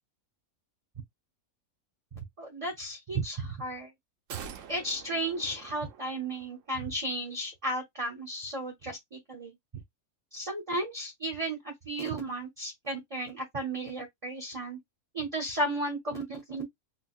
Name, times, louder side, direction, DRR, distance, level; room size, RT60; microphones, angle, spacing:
voice 1, 2.2-3.9 4.7-9.5 10.3-14.8 15.1-16.6, right 1 dB, 30° right, 0.8 m, -34 dB
sound 1, 4.3-6.7 6.9-7.0, right 8 dB, 65° right, 0.9 m, -45 dB
4.0 x 2.4 x 2.4 m
omnidirectional pair, 1.5 m